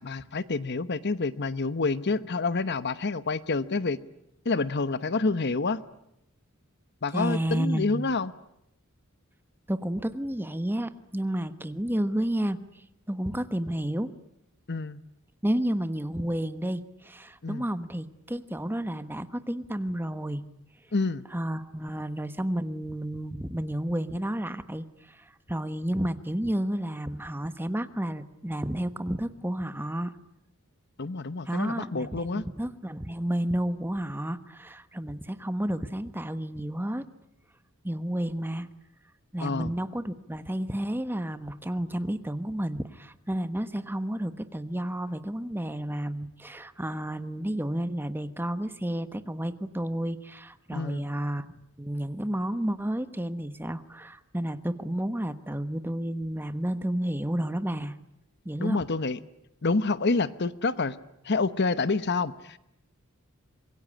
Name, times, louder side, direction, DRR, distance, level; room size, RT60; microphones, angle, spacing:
voice 1, 0.0-4.0 4.4-5.8 7.0-8.3 14.7-15.0 17.4-17.6 20.9-21.3 31.0-32.5 39.4-39.7 50.7-51.1 58.6-59.2 59.6-61.0 61.2-62.6, left 3 dB, 50° left, 14 dB, 1.0 m, -28 dB
voice 2, 7.1-8.1 9.7-14.1 15.4-20.4 21.3-30.1 31.5-37.1 37.8-38.7 39.3-51.5 51.8-58.0 58.4-58.8, right 1 dB, 10° right, 11 dB, 1.1 m, -31 dB
26.0 x 22.0 x 9.9 m, 0.82 s
head